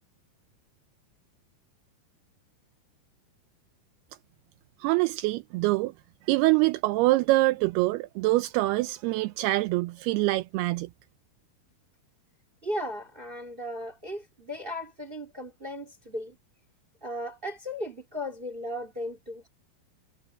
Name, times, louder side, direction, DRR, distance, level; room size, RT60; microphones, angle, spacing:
voice 1, 4.8-5.9 6.3-10.9, right 20 dB, 80° right, 2.6 m, -25 dB
voice 2, 12.6-16.4 17.0-19.5, left 1 dB, 25° right, 1.3 m, -36 dB
omnidirectional pair, 4.6 m